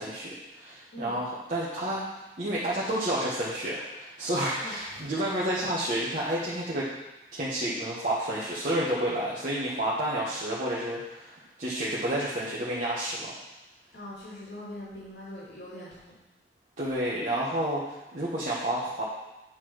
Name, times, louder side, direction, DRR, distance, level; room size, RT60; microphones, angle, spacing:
voice 1, 0.0-6.9 7.3-13.3 16.8-19.0, right 1 dB, 45° right, -7 dB, 1.4 m, -30 dB
voice 2, 4.6-5.0 13.9-16.0, left 1 dB, 80° left, -7 dB, 2.8 m, -42 dB
10.0 x 4.2 x 6.3 m, 1.0 s
head